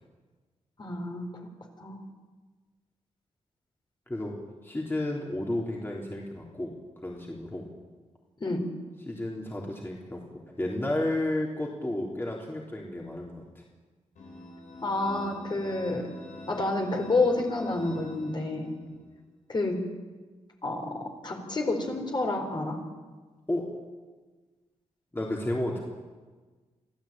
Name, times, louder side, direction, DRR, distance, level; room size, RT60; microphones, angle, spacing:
voice 1, 0.8-1.3 1.8-2.0 8.4-8.7 14.8-16.1 16.5-18.7 19.5-19.9 20.6-22.8, left 2 dB, 40° left, 2 dB, 4.4 m, -29 dB
voice 2, 4.6-6.7 7.0-7.7 9.1-10.2 10.6-13.6 18.8-18.9 23.5-23.7 25.1-25.8, left 1 dB, 20° left, -2 dB, 3.7 m, -32 dB
sound 1, 14.2-18.9, left 2 dB, 80° left, 7.3 m, -45 dB
25.0 x 15.0 x 9.0 m, 1.4 s
cardioid pair, 90°, 12 cm